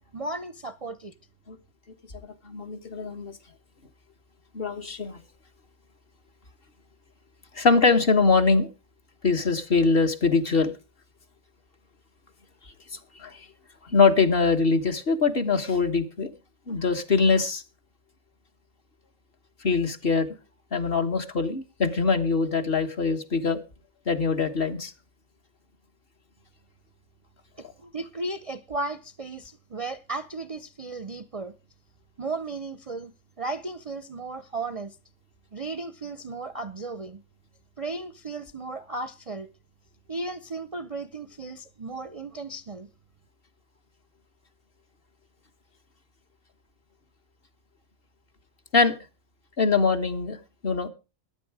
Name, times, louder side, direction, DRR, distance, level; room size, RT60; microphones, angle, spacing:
voice 1, 0.1-1.1 27.6-31.5 32.2-33.1 33.4-35.0 35.5-37.2 37.8-39.5 40.1-42.9, right 3 dB, 40° right, 0.6 m, -35 dB
voice 2, 2.2-3.3 4.5-5.2 7.5-8.7 9.2-10.7 12.9-13.5 13.8-16.3 16.7-17.6 19.6-20.3 20.7-23.6 24.1-24.9 48.7-48.9 49.6-50.4 50.6-50.9, left 4 dB, 45° left, 1.5 m, -23 dB
14.5 x 10.5 x 4.8 m
omnidirectional pair, 1.4 m